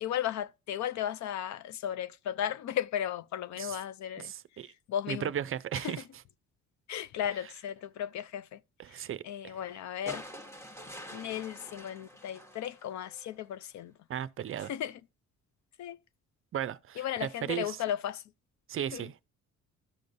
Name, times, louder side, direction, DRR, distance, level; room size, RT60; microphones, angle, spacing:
voice 1, 0.0-4.3 4.9-5.3 5.8-6.0 6.9-8.6 8.9-10.2 11.1-13.9 14.7-15.0 15.8-16.0 17.0-18.2 18.9-19.1, left 10 dB, 65° left, 0.5 m, -35 dB
voice 2, 4.2-4.7 5.1-6.0 8.8-9.6 14.1-14.7 16.5-17.8 18.7-19.1, right 10 dB, 45° right, 0.5 m, -36 dB
sound 1, 10.1-13.4 14.7-14.8, equal, 10° left, 1.0 m, -46 dB
13.0 x 5.1 x 2.6 m
cardioid pair, 80°, 31 cm